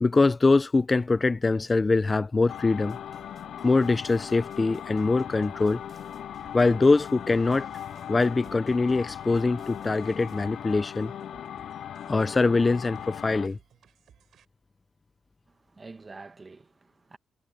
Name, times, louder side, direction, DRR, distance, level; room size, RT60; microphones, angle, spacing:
voice 1, 0.0-3.0 3.6-5.8 6.5-7.7 8.1-11.1 12.1-13.6, left 3 dB, 25° left, 0.7 m, -23 dB
sound 1, 2.5-13.5, left 9 dB, 70° left, 0.5 m, -39 dB
sound 2, 2.8-13.0, right 6 dB, 45° right, 7.8 m, -58 dB
sound 3, 6.4-14.4, right 9 dB, 70° right, 7.7 m, -59 dB
voice 2, 15.5-17.2, right 3 dB, 30° right, 1.8 m, -47 dB
cardioid pair, 90°, 0 cm